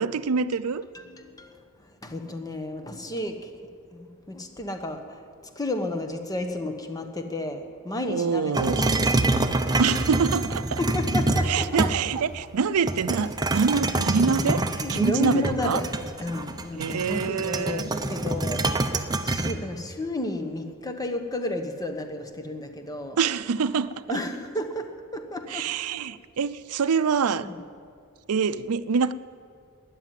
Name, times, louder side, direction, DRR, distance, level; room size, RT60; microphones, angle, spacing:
voice 1, 0.0-0.8 8.1-8.8 9.8-10.8 11.4-14.6 14.9-15.8 16.7-17.9 23.2-24.2 25.5-27.5 28.3-29.1, right 5 dB, 90° right, 15 dB, 0.5 m, -25 dB
voice 2, 0.9-1.6 2.0-3.5 3.9-5.2 5.6-9.1 10.8-11.9 14.8-15.9 16.2-18.8 19.2-23.2 24.1-25.7 27.4-27.7, left 1 dB, 15° left, 6 dB, 1.1 m, -32 dB
sound 1, 8.5-12.2 12.9-19.5, right 2 dB, 20° right, 0.7 m, -26 dB
13.0 x 10.0 x 9.3 m, 2.2 s
head